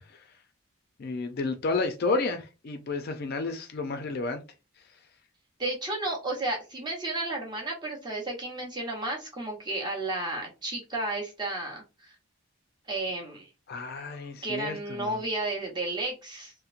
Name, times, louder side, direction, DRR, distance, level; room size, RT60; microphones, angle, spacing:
voice 1, 1.0-4.4 13.7-15.2, left 3 dB, 45° left, 0.3 m, -31 dB
voice 2, 5.6-12.1 12.9-13.5 14.4-16.5, right 2 dB, 20° right, 0.7 m, -32 dB
2.8 x 2.0 x 2.4 m
head